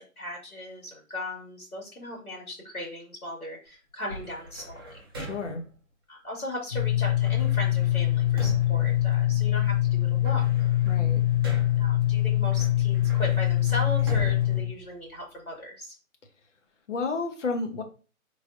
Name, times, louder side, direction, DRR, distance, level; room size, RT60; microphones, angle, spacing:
voice 1, 0.2-5.0 6.1-10.6 11.8-15.9, left 1 dB, 85° left, -1 dB, 2.1 m, -37 dB
sound 1, 4.1-5.7 7.2-9.6 10.0-11.9 12.5-15.5, right 1 dB, 15° right, 0.6 m, -40 dB
voice 2, 5.2-5.6 10.9-11.2 16.9-17.8, left 3 dB, 60° left, 5 dB, 1.2 m, -31 dB
sound 2, 6.7-14.6, left 13 dB, 30° left, 0.6 m, -24 dB
5.1 x 3.3 x 2.6 m, 0.35 s
figure-of-eight pair, 145°, 42 cm